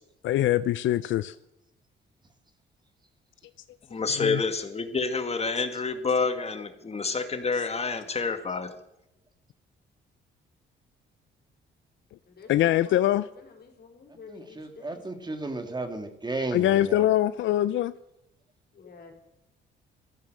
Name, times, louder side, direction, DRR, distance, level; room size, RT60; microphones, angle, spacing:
voice 1, 0.2-1.4 4.1-4.4 7.5-7.6 12.5-13.3 16.5-17.9, left 13 dB, 75° left, 15 dB, 0.5 m, -23 dB
voice 2, 3.9-8.7, left 4 dB, 30° left, 8 dB, 2.0 m, -28 dB
voice 3, 12.3-15.0 18.7-19.1, left 5 dB, 55° left, 3 dB, 4.1 m, -49 dB
voice 4, 14.3-17.1, right 2 dB, 20° right, 6 dB, 2.4 m, -34 dB
15.5 x 13.5 x 6.6 m, 0.87 s
cardioid pair, 90°, 20 cm